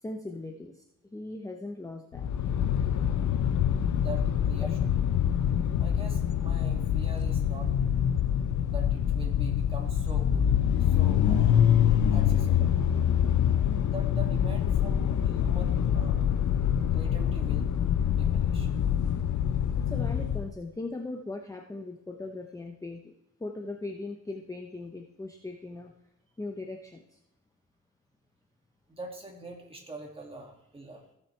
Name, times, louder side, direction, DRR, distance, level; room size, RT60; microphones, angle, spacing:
voice 1, 0.0-2.3 19.8-23.1 23.4-25.9 26.4-27.2, left 2 dB, 10° left, 2 dB, 0.7 m, -39 dB
sound 1, 2.1-20.5, left 9 dB, 65° left, 0.8 m, -25 dB
voice 2, 3.9-4.9 5.8-7.8 8.7-10.5 10.8-11.6 12.1-12.7 13.7-16.3 16.9-17.7 18.1-18.7 28.9-31.0, right 1 dB, 15° right, 0 dB, 2.2 m, -44 dB
16.0 x 7.5 x 3.3 m, 0.85 s
cardioid pair, 105°, 31 cm